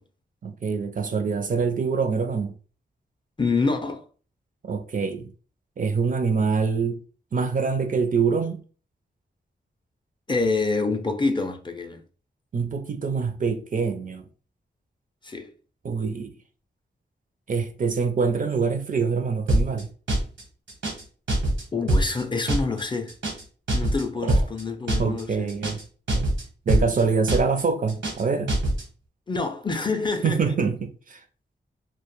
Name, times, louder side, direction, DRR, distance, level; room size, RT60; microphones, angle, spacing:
voice 1, 0.4-2.5 4.6-5.3 5.8-7.0 7.3-8.6 12.5-14.2 15.8-16.3 17.5-19.9 24.2-24.4 25.0-25.8 26.2-26.3 26.7-28.5 30.2-31.2, right 5 dB, 45° right, 0.4 m, -25 dB
voice 2, 3.4-4.0 10.3-12.0 15.2-15.5 21.7-23.1 23.7-25.5 29.3-30.5, left 3 dB, 25° left, 0.4 m, -26 dB
sound 1, 19.5-19.8 20.1-20.4 20.7-21.0 21.3-21.6 21.9-22.2 22.5-22.8 23.1-23.4 23.7-24.0 24.3-24.6 24.9-25.2 25.5-25.8 26.1-26.4 26.7-27.0 27.3-27.6 27.9-28.2 28.5-28.8, right 1 dB, 85° right, 1.0 m, -23 dB
2.1 x 2.0 x 3.0 m
cardioid pair, 65°, 19 cm